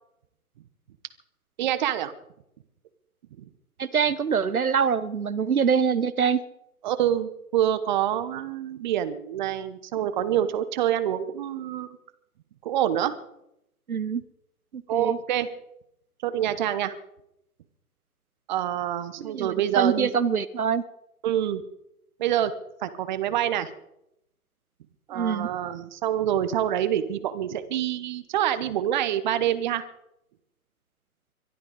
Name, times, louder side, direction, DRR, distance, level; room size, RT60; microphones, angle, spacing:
voice 1, 1.6-2.1 3.4-3.5 6.8-12.0 12.6-13.1 14.9-15.5 16.2-17.0 18.5-20.1 21.2-21.6 22.2-22.5 22.8-23.7 25.1-29.8, right 11 dB, 30° right, 12 dB, 1.1 m, -26 dB
voice 2, 3.8-6.4 13.9-14.2 14.7-15.2 19.3-20.8 25.1-25.5, right 6 dB, 70° right, 15 dB, 1.1 m, -24 dB
22.5 x 12.5 x 5.1 m, 0.81 s
figure-of-eight pair, 125°, 44 cm